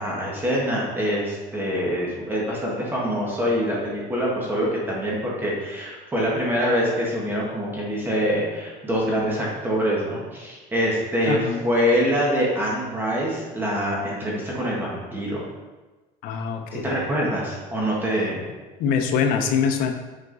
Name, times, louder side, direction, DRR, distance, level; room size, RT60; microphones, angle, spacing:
voice 1, 0.0-15.4 16.8-18.4, equal, 15° right, -4 dB, 1.6 m, -25 dB
voice 2, 11.3-11.6 16.2-17.0 18.8-19.9, left 6 dB, 65° left, 5 dB, 0.8 m, -23 dB
7.8 x 4.7 x 4.0 m, 1.2 s
cardioid pair, 155°, 16 cm